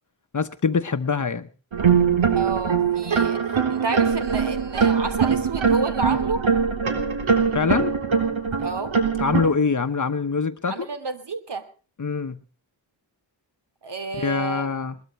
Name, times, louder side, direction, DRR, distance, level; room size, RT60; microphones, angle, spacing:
voice 1, 0.3-1.5 7.5-7.9 9.2-10.9 12.0-12.4 14.1-15.0, left 5 dB, 40° left, 1.0 m, -24 dB
sound 1, 1.7-9.5, right 6 dB, 90° right, 3.8 m, -22 dB
voice 2, 2.3-3.4 3.7-6.4 8.6-8.9 10.7-11.6 13.8-14.7, right 3 dB, 60° right, 2.9 m, -30 dB
22.0 x 21.0 x 3.1 m
wide cardioid pair, 160°, 46 cm